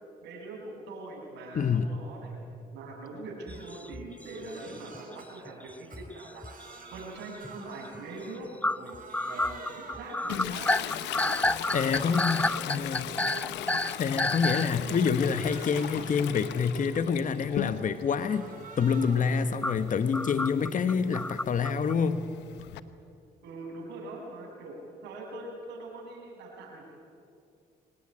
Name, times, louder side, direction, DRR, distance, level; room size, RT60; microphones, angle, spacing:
voice 1, 0.2-2.4 2.7-6.6 6.9-9.0 9.2-11.4 11.8-13.5 14.6-15.1 23.4-26.8, right 2 dB, 90° right, 0 dB, 6.6 m, -43 dB
voice 2, 1.5-1.9 11.7-13.1 14.0-18.5 18.8-22.2, left 6 dB, 50° left, 11 dB, 1.2 m, -27 dB
sound 1, 3.5-5.1 5.5-7.0 7.4-7.6 7.9-8.0 8.6-14.7 15.5-15.6 17.5-17.6 19.6-21.9, left 2 dB, 10° left, 0.5 m, -30 dB
Crying sobbing, 3.5-3.7 4.1-5.3 5.7-8.5 8.8-10.3 10.7-12.2 12.6-14.3 14.7-17.0 17.4-19.3 19.7-22.1, right 4 dB, 50° right, 6.2 m, -50 dB
Toilet flush, 10.3-18.1 18.5-22.8, left 13 dB, 90° left, 0.9 m, -39 dB
23.5 x 19.0 x 10.0 m, 2.4 s
supercardioid pair, 75°, 17 cm